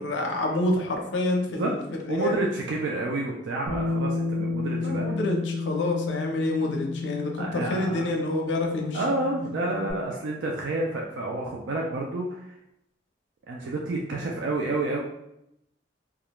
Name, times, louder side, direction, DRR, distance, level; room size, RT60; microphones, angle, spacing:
voice 1, 0.0-1.8 2.0-2.4 4.4-4.5 4.8-9.0, left 2 dB, 75° left, 2 dB, 0.5 m, -28 dB
voice 2, 2.1-5.1 6.6-6.7 7.4-8.1 8.9-12.5 13.5-15.0, right 2 dB, 80° right, -1 dB, 0.4 m, -29 dB
Bass guitar, 3.7-9.9, left 3 dB, 40° right, 0.6 m, -32 dB
2.3 x 2.1 x 2.9 m, 0.81 s
head